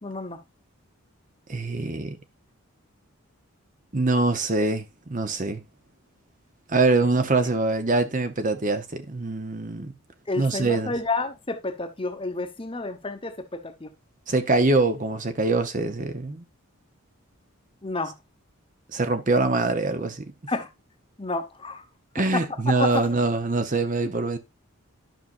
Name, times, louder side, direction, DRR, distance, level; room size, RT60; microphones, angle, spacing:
voice 1, 0.0-0.4 10.3-13.9 17.8-18.1 20.5-20.7 21.2-21.8 22.3-22.4 22.8-23.0, left 3 dB, 25° left, 1.0 m, -30 dB
voice 2, 1.5-2.2 3.9-5.6 6.7-9.9 10.4-10.9 14.3-16.4 18.9-20.3 22.1-24.4, right 3 dB, 35° right, 0.8 m, -24 dB
12.0 x 5.7 x 2.5 m
head